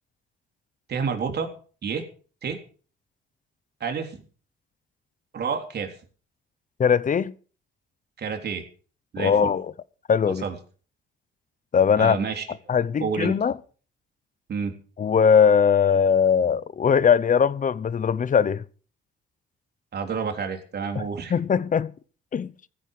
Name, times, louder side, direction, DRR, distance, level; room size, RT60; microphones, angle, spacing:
voice 1, 0.9-1.5 1.8-2.1 2.4-2.6 3.8-4.2 5.3-5.9 8.2-8.7 9.1-9.5 10.2-10.6 12.0-12.5 13.0-13.3 14.5-14.8 19.9-21.3, right 6 dB, 55° right, 3.6 m, -29 dB
voice 2, 6.8-7.3 9.2-9.7 10.1-10.4 11.7-12.2 12.7-13.5 15.0-18.6 21.0-21.1 21.3-21.9 22.3-22.5, left 7 dB, 40° left, 0.8 m, -20 dB
15.0 x 14.5 x 5.1 m
cardioid pair, 90°, 20 cm